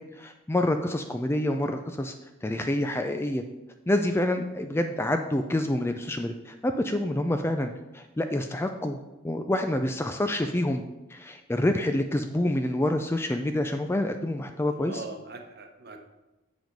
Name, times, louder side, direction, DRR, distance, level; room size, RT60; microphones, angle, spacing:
voice 1, 0.0-2.1 2.4-3.4 3.9-9.0 9.2-10.8 11.1-15.0, left 1 dB, 10° left, 6 dB, 0.3 m, -27 dB
voice 2, 14.6-16.0, right 3 dB, 50° right, 4 dB, 1.0 m, -41 dB
7.6 x 5.0 x 5.2 m, 1.0 s
head